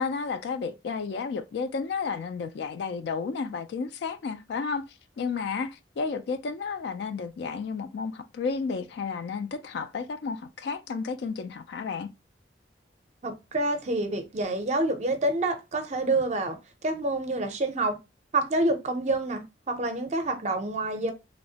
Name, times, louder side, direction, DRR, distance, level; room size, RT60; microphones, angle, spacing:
voice 1, 0.0-4.9 5.2-12.1, left 5 dB, 65° left, 0.3 m, -32 dB
voice 2, 13.2-16.6 16.8-18.0 18.3-21.1, right 2 dB, 35° right, 0.5 m, -27 dB
3.0 x 2.0 x 2.7 m
head